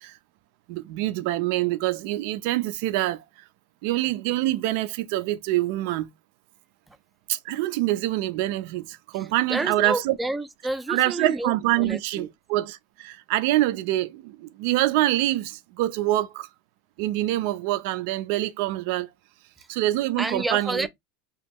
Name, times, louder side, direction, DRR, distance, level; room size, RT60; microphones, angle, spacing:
voice 1, 0.7-3.2 3.8-6.1 7.3-10.1 10.9-16.5 17.0-19.1 19.7-20.9, right 16 dB, 60° right, 0.4 m, -25 dB
voice 2, 9.1-12.3 19.6-19.7 20.2-20.9, right 2 dB, 10° right, 0.4 m, -30 dB
3.0 x 2.3 x 3.4 m
supercardioid pair, 130°, 0 cm